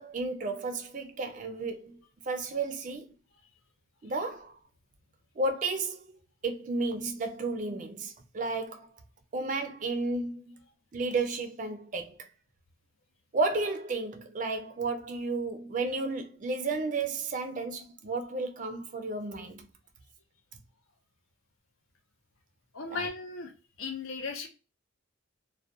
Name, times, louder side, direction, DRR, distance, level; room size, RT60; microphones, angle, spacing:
voice 1, 0.0-2.0 2.3-3.1 4.0-4.6 5.4-6.0 6.4-8.9 9.3-10.6 10.9-12.3 13.3-19.6 22.9-23.1, right 3 dB, 40° right, 0.4 m, -32 dB
voice 2, 22.7-23.5 23.8-24.5, left 4 dB, 85° left, 0.6 m, -36 dB
2.3 x 2.1 x 2.6 m
head